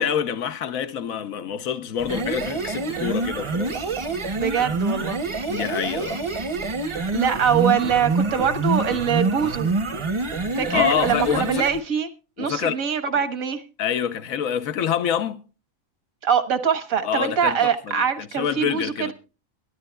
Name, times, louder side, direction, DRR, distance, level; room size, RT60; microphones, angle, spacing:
voice 1, 0.0-3.8 5.5-6.2 10.5-11.7 12.4-12.8 13.8-15.4 17.0-19.1, left 8 dB, 85° left, 1.3 m, -26 dB
sound 1, 2.0-11.8, right 3 dB, 30° right, 0.6 m, -26 dB
voice 2, 4.4-5.2 7.1-9.7 10.6-12.1 12.4-13.6 16.2-19.1, right 7 dB, 85° right, 1.7 m, -23 dB
23.0 x 11.0 x 2.2 m
omnidirectional pair, 1.4 m